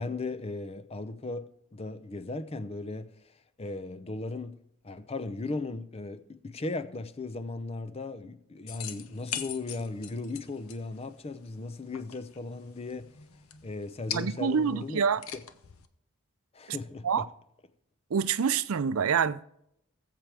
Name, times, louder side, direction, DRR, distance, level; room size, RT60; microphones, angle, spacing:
voice 1, 0.0-3.1 3.6-4.6 4.8-13.1 13.6-15.0 16.5-17.3, left 3 dB, 30° left, 0.6 m, -37 dB
sound 1, 8.7-15.9, left 9 dB, 90° left, 0.8 m, -43 dB
voice 2, 14.1-15.2 17.0-17.2 18.1-19.4, right 6 dB, 80° right, 0.5 m, -26 dB
19.5 x 7.6 x 3.4 m
head